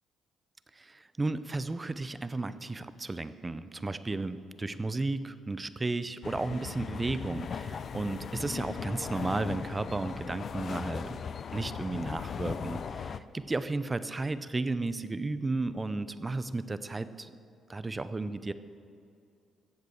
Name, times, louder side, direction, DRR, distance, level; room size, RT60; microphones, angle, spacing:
voice 1, 0.8-11.2 11.5-17.3 17.7-18.5, right 3 dB, 20° right, 13 dB, 0.6 m, -34 dB
sound 1, 6.2-13.2, left 6 dB, 50° left, 0.5 m, -38 dB
14.0 x 8.2 x 7.2 m, 2.5 s
cardioid pair, 90°, 0 cm